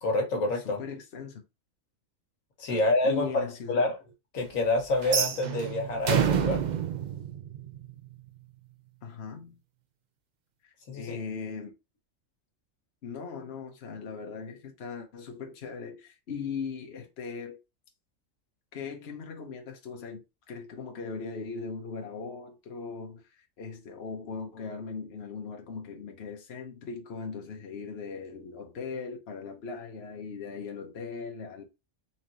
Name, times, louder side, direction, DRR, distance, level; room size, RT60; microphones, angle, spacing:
voice 1, 0.0-0.8 2.6-4.0 4.3-6.6 10.9-11.2, left 2 dB, 80° left, 1.7 m, -27 dB
voice 2, 0.5-1.4 2.7-3.8 9.0-9.6 10.6-11.7 13.0-17.6 18.7-31.6, left 5 dB, 55° left, 1.1 m, -39 dB
sound 1, 5.0-8.1, right 8 dB, 85° right, 0.4 m, -28 dB
4.3 x 3.1 x 2.7 m
omnidirectional pair, 1.4 m